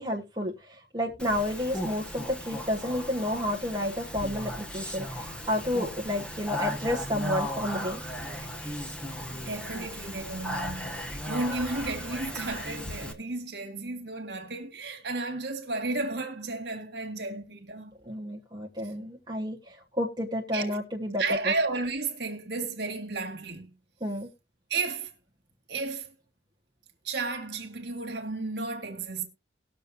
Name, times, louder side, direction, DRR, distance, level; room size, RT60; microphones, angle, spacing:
voice 1, 0.0-8.0 18.0-21.5 24.0-24.3, left 1 dB, 25° right, 1.2 m, -31 dB
Speech, 1.2-13.1, equal, 5° left, 1.3 m, -36 dB
voice 2, 9.3-18.0 20.5-20.8 21.2-23.7 24.7-25.1 25.7-26.1 27.0-29.3, right 3 dB, 60° right, 1.9 m, -33 dB
19.5 x 6.8 x 2.7 m
head